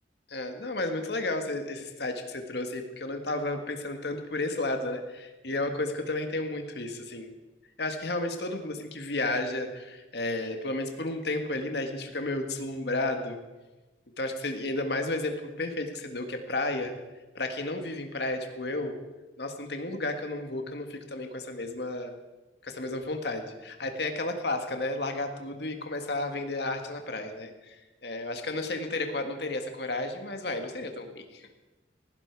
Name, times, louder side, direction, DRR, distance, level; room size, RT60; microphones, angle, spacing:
voice 1, 0.3-7.3 7.8-13.4 14.2-16.9 17.4-19.0 19.4-22.2 22.6-27.8 28.0-31.5, left 2 dB, 60° left, 5 dB, 1.8 m, -32 dB
18.5 x 16.0 x 4.7 m, 1.1 s
head